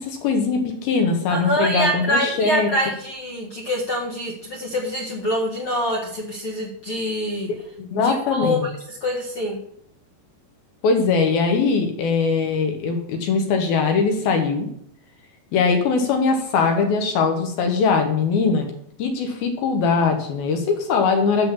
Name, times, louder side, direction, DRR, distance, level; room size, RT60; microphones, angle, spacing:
voice 1, 0.0-2.7 7.8-8.7 10.8-14.7 15.5-18.7 19.0-21.5, left 4 dB, 70° left, 4 dB, 2.7 m, -21 dB
voice 2, 1.3-7.5 7.9-8.7 9.0-9.6, equal, 55° left, -5 dB, 1.6 m, -25 dB
8.0 x 7.2 x 7.3 m, 0.69 s
omnidirectional pair, 5.0 m